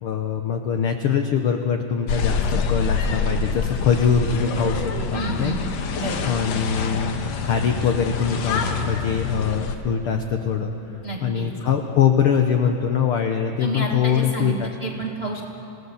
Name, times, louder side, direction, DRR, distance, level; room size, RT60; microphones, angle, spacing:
voice 1, 0.0-4.8 5.1-5.5 6.2-7.2 7.4-14.7, left 7 dB, 85° left, 5 dB, 1.2 m, -23 dB
sound 1, 2.1-9.8, left 5 dB, 65° left, 2.1 m, -26 dB
voice 2, 5.1-5.7 6.0-6.3 11.0-11.5 13.6-14.5 14.8-15.4, right 2 dB, 40° right, -1 dB, 0.8 m, -29 dB
27.0 x 17.5 x 7.1 m, 3.0 s
omnidirectional pair, 3.8 m